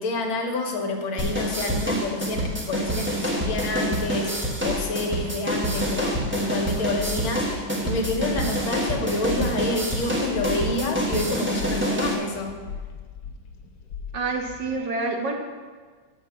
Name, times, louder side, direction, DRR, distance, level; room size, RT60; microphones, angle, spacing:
voice 1, 0.0-12.6, left 2 dB, 80° left, 3 dB, 1.9 m, -28 dB
sound 1, 1.2-14.8, left 6 dB, 65° left, 1.3 m, -39 dB
sound 2, 1.2-12.2, right 1 dB, 10° right, 0.8 m, -27 dB
voice 2, 14.1-15.3, right 3 dB, 65° right, 3 dB, 1.5 m, -27 dB
7.5 x 5.7 x 7.0 m, 1.5 s
omnidirectional pair, 2.2 m